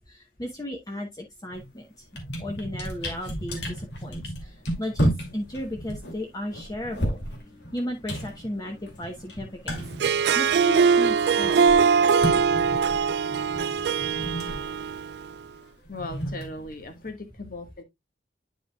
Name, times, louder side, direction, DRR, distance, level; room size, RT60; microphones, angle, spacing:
voice 1, 0.1-2.0 2.4-7.2 7.7-11.7, equal, 20° left, 0.9 m, -35 dB
sound 1, 1.5-1.7 2.0-10.9 11.2-17.1, equal, 85° left, 2.4 m, -33 dB
Harp, 9.9-15.3, right 6 dB, 65° right, 0.3 m, -22 dB
voice 2, 15.9-17.8, left 2 dB, 50° left, 1.5 m, -38 dB
9.8 x 5.4 x 2.3 m
head